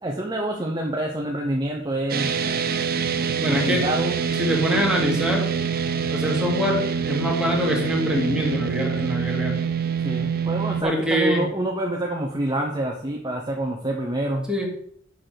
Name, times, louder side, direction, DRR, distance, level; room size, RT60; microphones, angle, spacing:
voice 1, 0.0-2.3 3.5-4.2 10.0-14.5, right 1 dB, 20° right, 0 dB, 1.0 m, -27 dB
sound 1, 2.1-10.8, right 6 dB, 50° right, 0.7 m, -25 dB
voice 2, 3.4-3.8 4.4-5.5 6.1-6.8 7.1-9.6 10.8-11.5 14.5-14.7, equal, 5° right, -2 dB, 2.3 m, -24 dB
7.4 x 5.9 x 6.8 m, 0.65 s
head